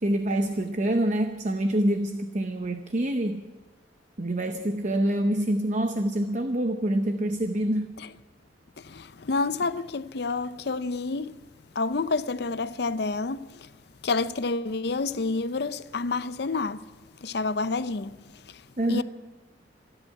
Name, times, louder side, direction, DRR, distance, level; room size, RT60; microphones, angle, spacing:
voice 1, 0.0-3.4 4.2-7.9 18.8-19.0, right 1 dB, 40° right, 0.8 m, -26 dB
voice 2, 8.8-11.3 11.8-13.7 14.0-16.9 17.2-18.2 18.9-19.0, left 3 dB, 55° left, 0.6 m, -29 dB
27.5 x 11.0 x 4.7 m
head